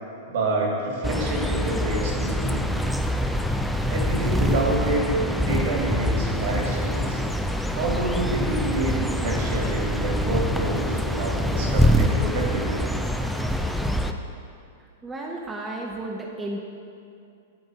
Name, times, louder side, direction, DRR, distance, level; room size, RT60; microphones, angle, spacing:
voice 1, 0.3-2.6 3.8-5.1 5.4-7.2 7.7-12.9, right 2 dB, 60° right, -1 dB, 2.1 m, -28 dB
sound 1, 1.0-14.1, equal, ahead, 0.5 m, -25 dB
voice 2, 15.0-16.6, right 2 dB, 15° right, -2 dB, 0.9 m, -33 dB
11.0 x 3.8 x 6.3 m, 2.4 s
figure-of-eight pair, 100°, 0 cm